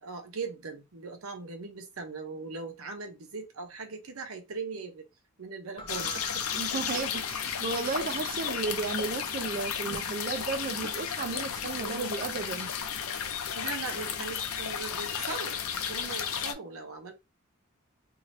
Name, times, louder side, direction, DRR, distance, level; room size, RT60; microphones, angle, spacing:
voice 1, 0.0-5.1 5.4-6.4 9.8-10.0 11.8-12.1 13.5-17.1, right 4 dB, 75° right, 0.8 m, -39 dB
Keyboard (musical), 5.8-8.2, right 3 dB, 25° left, 0.5 m, -47 dB
sound 1, 5.9-16.5, left 7 dB, 80° left, 0.6 m, -33 dB
voice 2, 6.6-12.7, right 4 dB, 45° right, 0.4 m, -34 dB
2.6 x 2.6 x 3.2 m
head